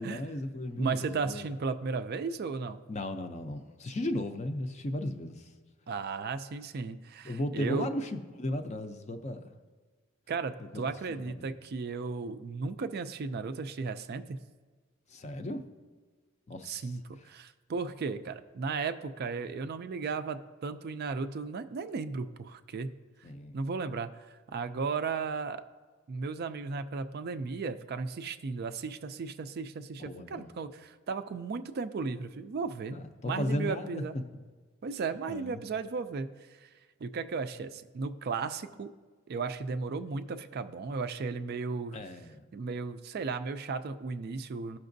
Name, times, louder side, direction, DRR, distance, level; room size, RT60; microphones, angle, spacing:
voice 1, 0.0-1.5 2.9-5.5 7.2-9.5 11.1-11.5 15.1-15.6 16.5-16.9 23.2-23.6 30.0-30.5 32.9-34.0 35.3-35.6 41.9-42.4, left 1 dB, 30° left, 7 dB, 0.5 m, -35 dB
voice 2, 0.8-2.8 5.9-7.9 10.3-14.4 16.6-23.0 23.5-25.6 26.1-33.0 33.2-34.2 34.8-36.7 37.0-38.9 39.3-42.0 42.5-44.8, right 4 dB, 45° right, 9 dB, 0.3 m, -35 dB
14.5 x 5.8 x 2.6 m, 1.4 s
head